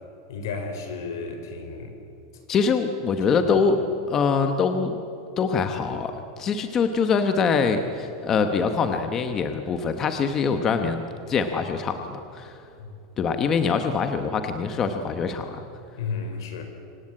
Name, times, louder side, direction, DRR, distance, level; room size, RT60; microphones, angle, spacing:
voice 1, 0.3-2.0 3.2-3.7 12.8-12.9 16.0-16.6, left 4 dB, 75° left, 6 dB, 4.7 m, -33 dB
voice 2, 2.5-3.8 4.1-5.0 5.4-11.0 11.3-12.6 13.2-15.6, left 5 dB, 20° left, 7 dB, 1.0 m, -24 dB
25.5 x 17.5 x 8.8 m, 2.8 s
supercardioid pair, 175°, 2 cm